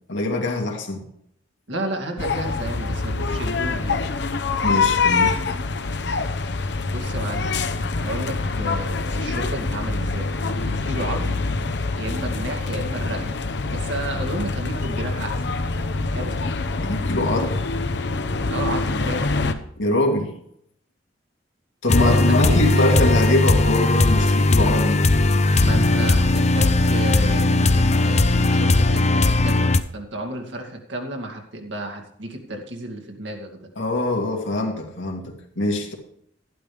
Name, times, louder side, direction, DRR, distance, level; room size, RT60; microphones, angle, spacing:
voice 1, 0.1-1.0 4.6-5.4 16.8-17.6 19.8-20.3 21.8-25.1 33.8-35.9, left 2 dB, 85° left, 1 dB, 2.3 m, -23 dB
voice 2, 1.7-4.1 6.9-7.6 7.9-11.4 12.0-13.4 13.7-15.4 16.1-16.4 18.5-19.4 21.9-22.9 25.6-33.6, right 1 dB, 80° right, 3 dB, 2.3 m, -32 dB
sound 1, 2.2-19.5, left 3 dB, 65° left, 0.8 m, -25 dB
sound 2, 21.9-29.8, left 2 dB, 35° left, 0.6 m, -18 dB
12.0 x 11.0 x 3.4 m, 0.70 s
head